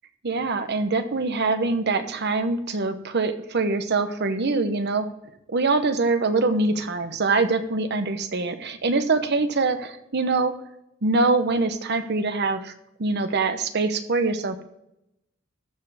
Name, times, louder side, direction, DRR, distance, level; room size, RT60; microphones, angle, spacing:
voice 1, 0.2-5.1 5.5-10.5 11.0-12.7 13.0-14.6, right 3 dB, 55° right, 9 dB, 0.9 m, -24 dB
14.0 x 5.0 x 4.8 m, 0.83 s
head